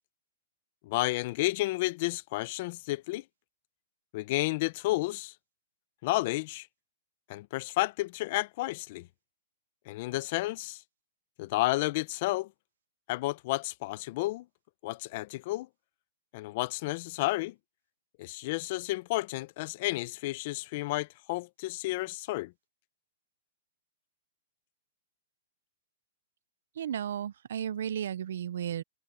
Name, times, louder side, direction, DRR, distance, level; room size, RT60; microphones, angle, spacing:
voice 1, 0.8-3.2 4.1-5.3 6.0-6.7 7.3-9.1 9.9-10.8 11.4-12.5 13.1-14.5 14.8-15.7 16.3-17.5 18.2-22.5, left 19 dB, 45° left, 0.7 m, -31 dB
voice 2, 26.8-28.8, right 9 dB, 70° right, 0.7 m, -34 dB
hypercardioid pair, 150°, 0 cm